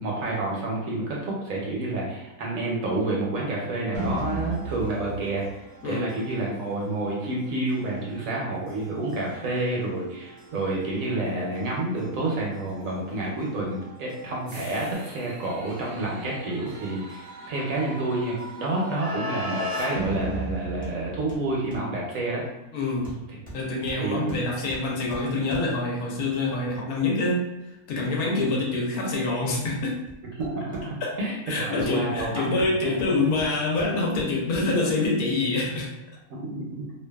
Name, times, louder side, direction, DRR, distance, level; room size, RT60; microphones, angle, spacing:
voice 1, 0.0-5.5 5.8-22.4 24.0-24.4 28.4-28.5 30.4-32.9 36.3-36.9, right 2 dB, 70° right, -3 dB, 0.9 m, -29 dB
sound 1, 3.9-21.7, right 1 dB, 40° right, 0.5 m, -37 dB
Hammer, 20.8-21.0 21.3-22.0 23.0-25.9 29.7-31.2 31.8-34.9 35.3-35.4, right 1 dB, 10° left, 0.7 m, -44 dB
voice 2, 22.7-23.2 23.5-27.4 27.9-30.0 31.5-35.9, left 3 dB, 75° left, -2 dB, 1.1 m, -26 dB
2.6 x 2.4 x 2.2 m, 0.98 s
omnidirectional pair, 1.7 m